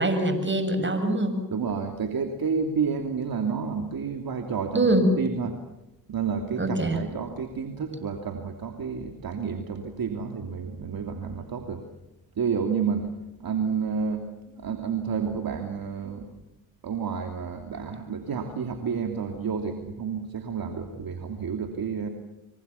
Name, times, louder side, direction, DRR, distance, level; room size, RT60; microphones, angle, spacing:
voice 1, 0.0-1.4 4.7-5.1 6.6-7.0, right 1 dB, 25° right, 7 dB, 7.2 m, -23 dB
voice 2, 1.5-5.6 6.1-11.8 12.4-13.1 13.4-14.3 14.5-16.3 16.8-22.1, right 6 dB, 55° right, 5 dB, 2.9 m, -30 dB
25.0 x 25.0 x 7.0 m, 0.94 s
hypercardioid pair, 50°, 42 cm